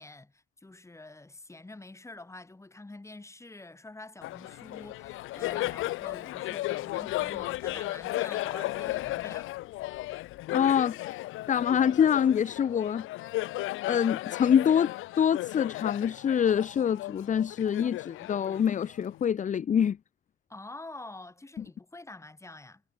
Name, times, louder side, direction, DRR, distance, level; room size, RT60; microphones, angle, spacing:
voice 1, 0.0-9.5 20.5-22.8, left 2 dB, 15° left, 2.2 m, -47 dB
Laughter, 4.2-19.2, left 17 dB, 90° left, 0.9 m, -35 dB
voice 2, 10.5-11.2 11.5-13.3 13.9-20.0 21.6-21.7, left 8 dB, 40° left, 0.6 m, -25 dB
cardioid pair, 90°, 20 cm